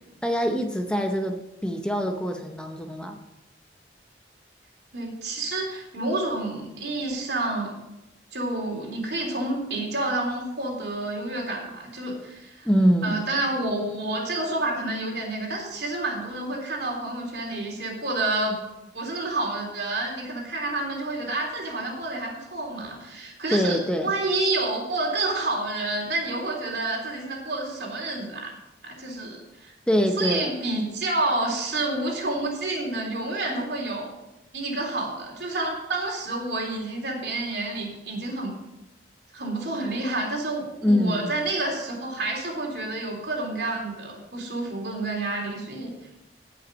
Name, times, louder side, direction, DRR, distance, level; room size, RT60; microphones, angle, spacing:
voice 1, 0.2-3.2 12.6-13.2 23.5-24.1 29.9-30.5 40.8-41.3, equal, 5° left, 4 dB, 0.8 m, -24 dB
voice 2, 4.9-7.7 8.3-12.7 13.0-18.6 18.9-28.5 28.8-29.7 30.2-34.1 34.5-38.5 39.3-45.9, right 2 dB, 65° right, 0 dB, 3.6 m, -29 dB
17.5 x 6.0 x 5.2 m, 0.93 s
head